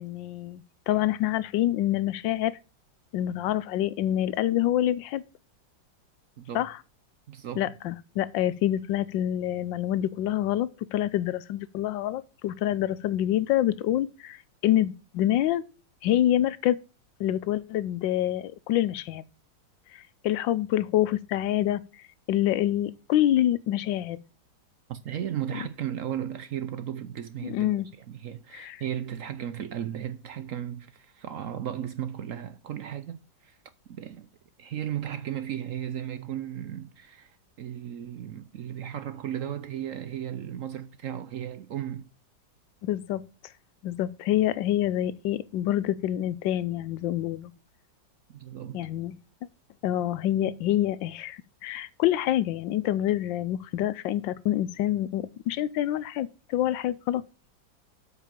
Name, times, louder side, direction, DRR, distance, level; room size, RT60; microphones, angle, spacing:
voice 1, 0.0-2.6 3.1-5.2 6.5-6.8 7.6-15.6 16.0-16.8 17.2-19.2 19.9-21.8 22.3-24.2 27.4-27.9 28.5-28.8 42.8-43.2 43.8-47.5 48.7-49.2 49.8-57.2, left 12 dB, 85° left, 1.4 m, -26 dB
voice 2, 6.4-6.7 7.3-7.7 24.9-33.6 33.9-34.3 34.6-42.1 48.3-48.8, right 10 dB, 70° right, 0.8 m, -35 dB
8.3 x 5.2 x 7.3 m
omnidirectional pair, 2.0 m